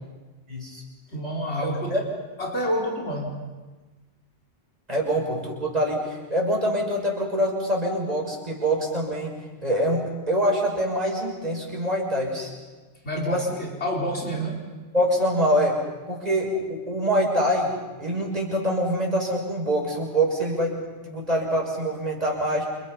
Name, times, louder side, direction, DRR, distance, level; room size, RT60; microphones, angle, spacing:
voice 1, 0.5-0.8 1.9-2.0 4.9-9.3 9.6-12.5 13.2-13.4 14.9-15.8 16.1-17.7 18.0-20.8 21.1-22.7, equal, 35° right, -1 dB, 6.5 m, -25 dB
voice 2, 1.1-2.0 2.4-3.4 13.0-14.7, equal, 80° left, -2 dB, 4.8 m, -28 dB
29.0 x 28.5 x 5.8 m, 1.3 s
omnidirectional pair, 1.1 m